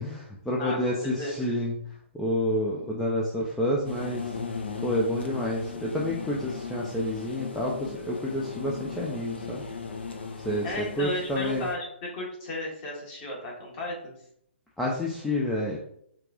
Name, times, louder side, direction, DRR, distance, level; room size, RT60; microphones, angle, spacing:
voice 1, 0.0-1.7 2.1-4.3 4.8-9.6 10.4-11.7 14.8-15.8, left 1 dB, 5° left, -4 dB, 0.4 m, -29 dB
voice 2, 0.6-1.5 10.6-14.1, left 1 dB, 30° left, -3 dB, 1.4 m, -34 dB
sound 1, 3.8-11.7, left 4 dB, 55° left, 0.7 m, -37 dB
4.6 x 2.5 x 3.6 m, 0.70 s
figure-of-eight pair, 130°, 7 cm